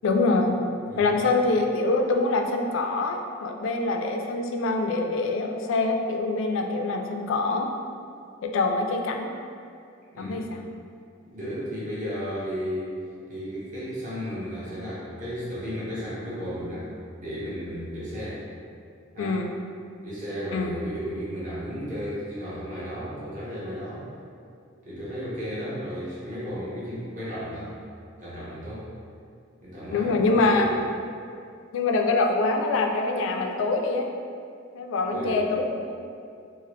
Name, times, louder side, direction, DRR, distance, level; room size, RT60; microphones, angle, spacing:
voice 1, 0.0-0.6 1.0-7.7 8.4-9.3 10.2-10.6 19.2-19.5 20.5-20.8 29.9-30.7 31.7-34.1 34.7-36.0, left 3 dB, 75° left, 3 dB, 0.3 m, -25 dB
voice 2, 10.1-10.5 11.3-12.9 13.3-16.9 17.2-18.4 19.1-19.4 20.0-24.1 24.8-27.7 28.2-28.9 29.6-30.8 35.1-35.5, equal, 40° right, -9 dB, 0.9 m, -34 dB
2.8 x 2.4 x 3.1 m, 2.4 s
head